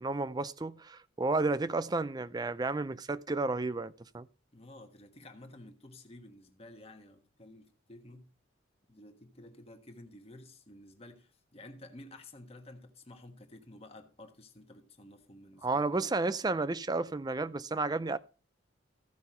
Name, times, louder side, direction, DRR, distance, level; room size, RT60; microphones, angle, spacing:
voice 1, 0.0-4.3 15.6-18.2, right 3 dB, 20° right, 0.4 m, -32 dB
voice 2, 4.5-8.3 8.9-16.1 16.5-16.6, left 1 dB, 30° left, 1.4 m, -52 dB
15.0 x 5.8 x 4.3 m
head